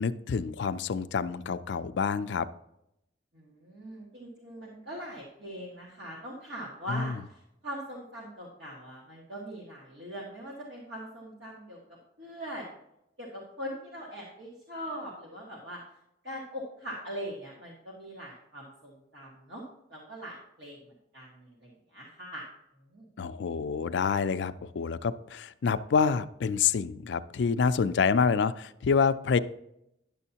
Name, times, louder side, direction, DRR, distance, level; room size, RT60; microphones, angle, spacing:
voice 1, 0.0-2.5 6.9-7.1 23.2-29.4, left 5 dB, 65° left, 12 dB, 0.4 m, -27 dB
voice 2, 3.3-11.8 12.2-12.7 13.2-15.8 16.2-19.6 19.9-20.8 21.1-22.4 22.9-23.1, equal, 65° right, -3 dB, 1.5 m, -41 dB
10.5 x 7.0 x 2.8 m, 0.82 s
head